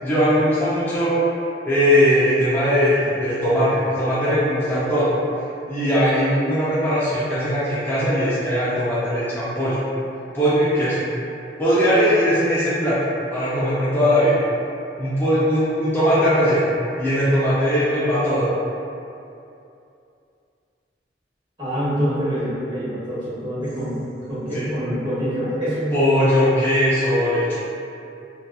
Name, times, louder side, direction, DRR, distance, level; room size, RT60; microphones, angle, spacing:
voice 1, 0.0-1.2 1.6-5.1 5.7-9.8 10.3-11.0 11.6-13.0 13.3-14.4 15.0-16.7 17.0-18.5 24.5-24.7 25.9-27.5, equal, 10° left, -11 dB, 0.4 m, -19 dB
voice 2, 21.6-23.9 24.3-25.9, equal, 25° right, -13 dB, 1.2 m, -25 dB
2.8 x 2.3 x 2.2 m, 2.6 s
head